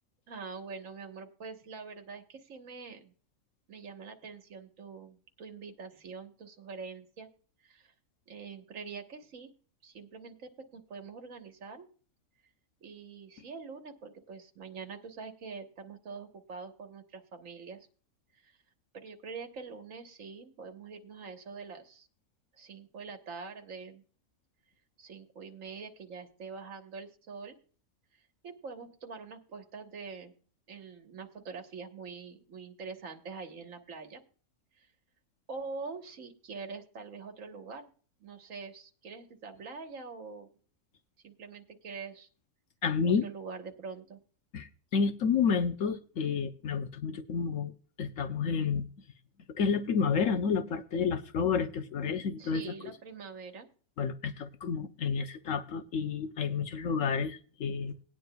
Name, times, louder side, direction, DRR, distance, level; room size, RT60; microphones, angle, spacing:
voice 1, 0.3-3.1 3.7-7.3 7.6-7.9 8.3-9.5 9.8-11.9 12.8-17.9 18.4-18.6 18.9-22.1 22.6-24.0 25.0-27.6 28.4-30.3 30.7-34.2 34.8-34.9 35.5-37.9 38.2-40.5 41.2-42.3 43.0-44.2 52.4-53.7, right 4 dB, 65° right, 1.7 m, -44 dB
voice 2, 42.8-43.3 44.5-47.7 48.0-48.9 49.6-52.6 54.0-58.0, left 6 dB, 65° left, 1.1 m, -30 dB
19.0 x 9.4 x 2.3 m
omnidirectional pair, 1.5 m